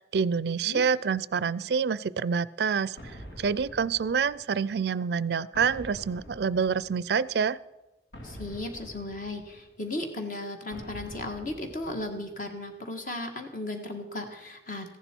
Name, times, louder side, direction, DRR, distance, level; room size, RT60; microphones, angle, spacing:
voice 1, 0.0-7.6, right 6 dB, 65° right, 19 dB, 0.4 m, -27 dB
sound 1, 3.0-4.7 5.5-7.3 8.1-9.9 10.7-12.5, equal, 75° left, 2.5 m, -46 dB
voice 2, 8.2-15.0, left 2 dB, 50° left, 4 dB, 1.6 m, -36 dB
15.0 x 11.0 x 4.5 m, 1.1 s
head